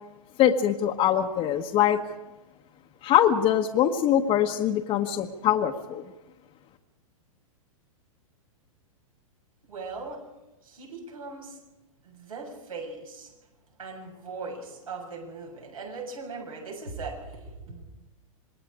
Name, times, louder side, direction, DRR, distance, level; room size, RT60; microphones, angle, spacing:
voice 1, 0.4-2.0 3.0-6.0, left 10 dB, 35° left, 2 dB, 1.3 m, -23 dB
voice 2, 9.7-10.2 10.6-11.5 12.0-13.3 13.8-17.2 17.7-17.9, right 4 dB, 85° right, 0 dB, 7.1 m, -39 dB
27.0 x 20.5 x 4.9 m, 1.0 s
hypercardioid pair, 110°, 18 cm